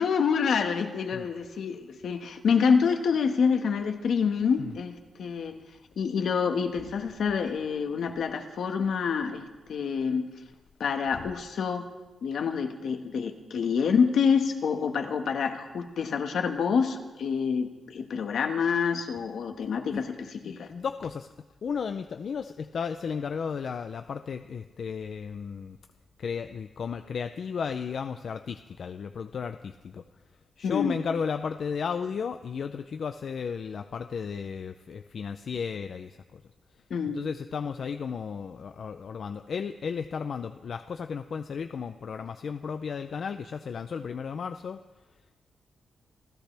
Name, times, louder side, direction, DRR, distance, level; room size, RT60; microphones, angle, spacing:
voice 1, 0.0-5.6 6.0-10.3 10.8-11.8 12.2-20.7 30.6-31.0 36.9-37.2, left 6 dB, 75° left, 5 dB, 1.5 m, -27 dB
voice 2, 20.4-21.3 21.6-25.8 26.2-30.0 30.6-36.4 37.1-44.8, left 6 dB, 55° left, 8 dB, 0.5 m, -34 dB
29.0 x 14.5 x 3.4 m, 1.2 s
wide cardioid pair, 180°, 0 cm